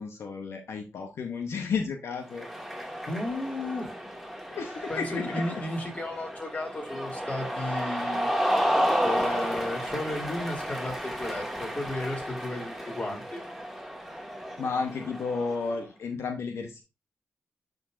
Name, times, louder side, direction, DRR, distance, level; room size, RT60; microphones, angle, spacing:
voice 1, 0.0-2.5 4.5-5.6 14.6-16.8, left 5 dB, 80° left, 5 dB, 0.8 m, -32 dB
Cheering, 2.3-15.7, equal, ahead, 1.6 m, -32 dB
voice 2, 3.1-3.9 4.9-8.3 9.0-13.4, left 1 dB, 35° left, 1 dB, 2.9 m, -34 dB
10.5 x 3.9 x 2.5 m, 0.27 s
cardioid pair, 60°, 5 cm